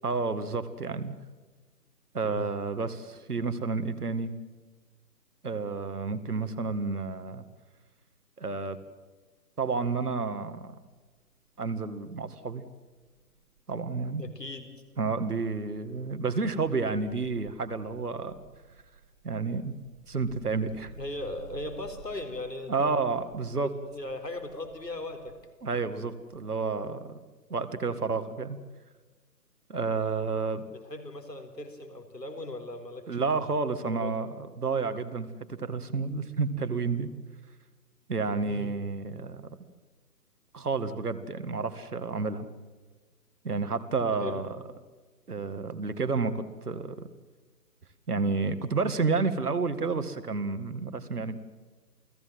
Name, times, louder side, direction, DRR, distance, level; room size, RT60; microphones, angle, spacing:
voice 1, 0.0-1.1 2.1-4.3 5.4-7.4 8.4-8.8 9.6-10.7 11.6-12.6 13.7-14.2 15.0-18.4 19.2-19.8 20.1-20.9 22.7-23.7 25.6-27.2 27.5-28.6 29.7-30.7 33.1-37.1 38.1-39.5 40.5-42.5 43.4-44.5 45.3-47.1 48.1-51.4, right 4 dB, 65° right, 10 dB, 2.1 m, -30 dB
Wind, 10.7-14.2 14.5-26.7 27.0-27.1, right 5 dB, 30° right, 1.8 m, -54 dB
voice 2, 14.2-14.7 21.0-22.9 23.6-25.4 30.4-33.2 33.7-34.2 38.5-38.7 44.2-44.4, left 2 dB, 85° left, 6 dB, 4.1 m, -38 dB
29.0 x 17.5 x 7.7 m, 1.4 s
figure-of-eight pair, 145°, 48 cm